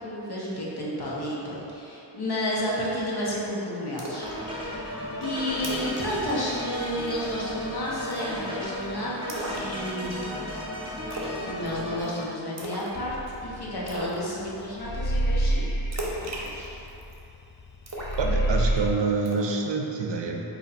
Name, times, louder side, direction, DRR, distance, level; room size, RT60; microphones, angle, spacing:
voice 1, 0.0-4.7 5.2-10.3 11.4-13.2 13.4-15.7 16.2-16.8, left 1 dB, 60° left, -6 dB, 1.0 m, -31 dB
Splash splatter, 4.0-4.3 4.7-4.8 5.2-5.3 5.6-6.0 6.3-6.5 6.8-7.2 8.1-8.5 9.3-10.2 11.1-11.4 11.7-12.0 12.6-13.0 13.3-13.4 13.9-14.2 15.9-17.2 17.9-18.8 19.3-19.5, right 1 dB, 35° right, 0.9 m, -36 dB
sound 1, 4.2-12.2, equal, 10° right, 0.8 m, -35 dB
sound 2, 12.9-14.4 14.8-17.7 18.0-18.9, right 1 dB, 30° left, 0.4 m, -27 dB
voice 2, 18.2-20.4, right 4 dB, 70° right, 2 dB, 0.6 m, -27 dB
4.1 x 2.8 x 4.2 m, 2.9 s
cardioid pair, 40°, 45 cm